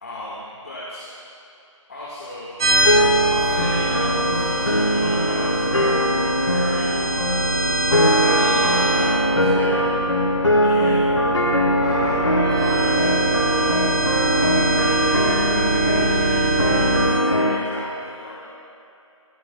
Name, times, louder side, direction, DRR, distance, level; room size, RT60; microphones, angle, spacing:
voice 1, 0.0-1.1 1.9-2.6 3.2-5.6 6.5-6.9 8.2-9.9 10.6-11.2 11.8-13.7 14.3-18.4, left 1 dB, 30° left, -6 dB, 1.7 m, -35 dB
sound 1, 2.6-17.1, right 2 dB, 10° right, 0.8 m, -24 dB
sound 2, 2.8-17.6, equal, 70° left, 3.4 m, -21 dB
25.0 x 13.5 x 2.3 m, 2.8 s
figure-of-eight pair, 170°, 17 cm